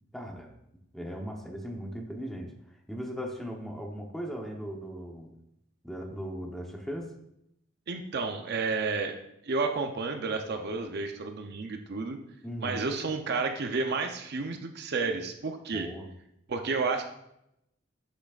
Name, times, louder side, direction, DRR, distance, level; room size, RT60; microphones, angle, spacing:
voice 1, 0.1-0.5 0.9-2.5 2.9-5.3 5.8-7.1 12.4-12.8 15.7-16.1, equal, ahead, 1 dB, 0.9 m, -38 dB
voice 2, 7.9-9.2 9.4-12.2 12.6-15.9 16.5-17.1, right 4 dB, 55° right, 5 dB, 0.6 m, -31 dB
8.4 x 6.1 x 2.4 m, 0.80 s
head